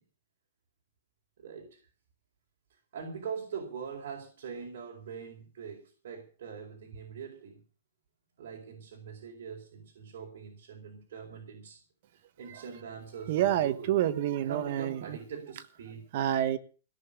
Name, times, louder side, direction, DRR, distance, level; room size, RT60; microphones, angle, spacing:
voice 1, 1.4-1.8 2.9-7.6 8.4-11.8 12.1-14.0 14.4-16.1, right 6 dB, 65° right, 0 dB, 4.6 m, -43 dB
voice 2, 13.3-15.2 16.1-16.6, right 12 dB, 45° right, 12 dB, 1.3 m, -28 dB
17.0 x 7.0 x 9.0 m, 0.39 s
hypercardioid pair, 165°, 0 cm